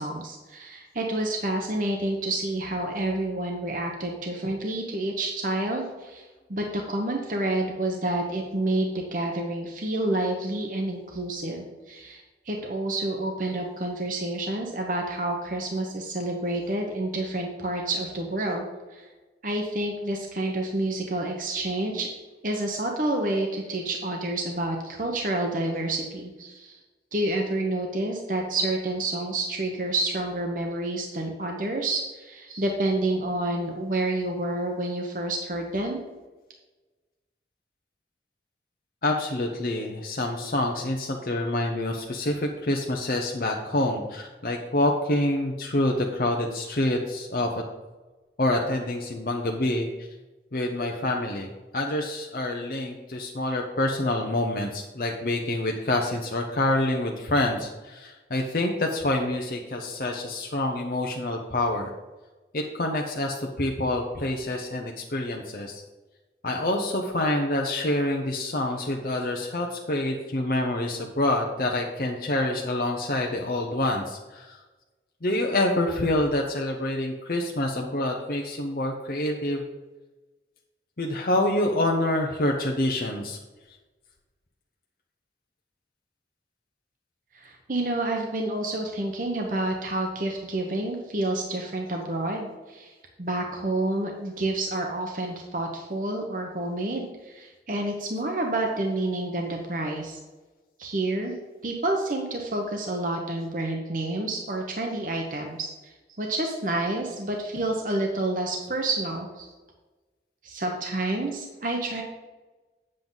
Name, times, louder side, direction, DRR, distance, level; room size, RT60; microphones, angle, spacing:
voice 1, 0.0-18.7 18.9-19.1 19.4-22.1 22.4-26.8 27.1-36.0 87.3-92.9 93.2-100.2 100.8-101.3 101.6-109.5 110.4-112.0, right 2 dB, 50° right, 1 dB, 1.0 m, -29 dB
voice 2, 39.0-47.5 48.4-50.1 50.5-61.9 62.5-65.8 66.4-74.6 75.2-79.6 81.0-83.4, left 1 dB, 55° left, 1 dB, 0.8 m, -27 dB
8.9 x 7.7 x 3.9 m, 1.2 s
head